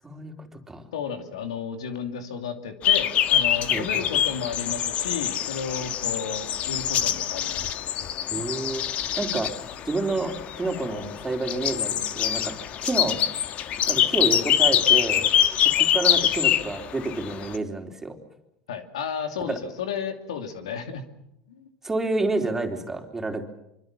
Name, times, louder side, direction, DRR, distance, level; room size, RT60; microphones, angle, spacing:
voice 1, 0.0-0.9 3.7-4.0 8.3-8.8 9.2-13.3 13.9-15.3 15.6-18.2 19.5-19.6 21.8-23.4, right 2 dB, 15° right, 4 dB, 4.0 m, -29 dB
voice 2, 0.9-7.9 18.7-21.0 21.5-21.7, left 6 dB, 90° left, 7 dB, 2.6 m, -33 dB
sound 1, 2.8-17.6, left 10 dB, 50° left, 1.5 m, -24 dB
25.0 x 25.0 x 7.3 m, 0.84 s
hypercardioid pair, 95°, 3 cm